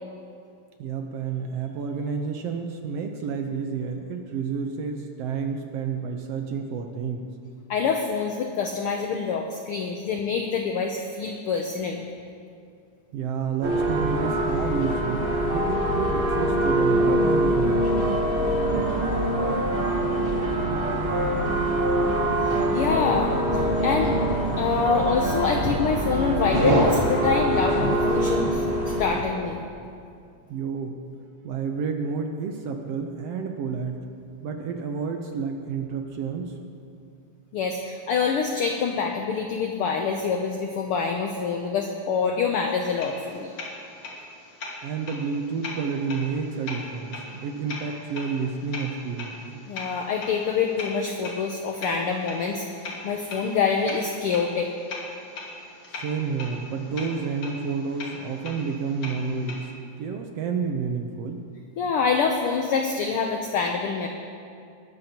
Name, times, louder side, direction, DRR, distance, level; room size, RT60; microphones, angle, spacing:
voice 1, 0.8-7.3 13.1-18.2 30.5-31.0 31.4-34.1 34.4-36.5 44.8-49.4 55.9-59.7 60.0-61.4, right 5 dB, 70° right, 3 dB, 1.6 m, -30 dB
voice 2, 7.7-12.0 22.4-24.2 24.6-28.6 29.0-29.6 37.5-43.5 49.7-54.7 61.8-64.1, left 5 dB, 85° left, 3 dB, 1.2 m, -26 dB
sound 1, 13.6-29.2, right 1 dB, 50° right, 0.6 m, -24 dB
sound 2, 42.8-59.7, left 2 dB, 45° left, 2.4 m, -40 dB
19.5 x 13.0 x 2.9 m, 2.4 s
omnidirectional pair, 3.4 m